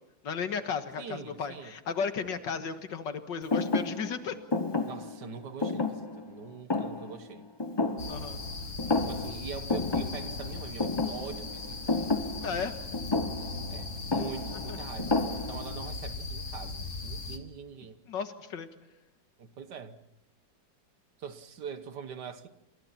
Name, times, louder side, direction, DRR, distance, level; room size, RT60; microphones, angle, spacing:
voice 1, 0.2-4.4 8.1-8.4 12.4-12.7 14.7-14.8 18.1-18.7, left 6 dB, 75° left, 2.1 m, -34 dB
voice 2, 1.0-1.8 4.8-7.5 8.9-12.1 13.7-18.0 19.4-20.0 21.2-22.5, right 6 dB, 65° right, 1.8 m, -43 dB
Thump thud, 3.5-8.5 8.8-9.4 9.7-15.8, left 3 dB, 25° left, 0.5 m, -31 dB
sound 1, 8.0-17.4, left 3 dB, 45° left, 2.1 m, -39 dB
28.0 x 27.0 x 4.3 m
omnidirectional pair, 2.0 m